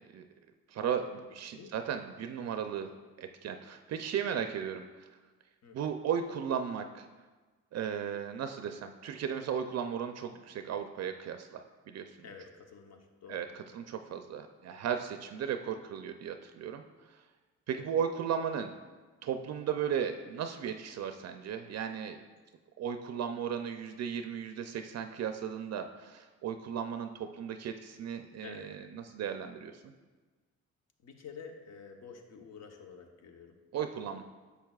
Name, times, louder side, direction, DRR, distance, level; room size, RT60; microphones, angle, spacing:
voice 1, 0.7-2.9 3.2-5.1 5.7-7.1 7.7-12.2 13.3-16.8 17.1-17.2 17.7-18.7 19.2-22.2 22.8-29.9 33.7-34.2, right 8 dB, 60° right, 7 dB, 0.5 m, -36 dB
voice 2, 12.2-13.5 17.7-17.9 28.4-28.7 31.0-33.6, left 6 dB, 60° left, 4 dB, 1.0 m, -49 dB
10.5 x 7.0 x 2.4 m, 1.3 s
cardioid pair, 90°, 30 cm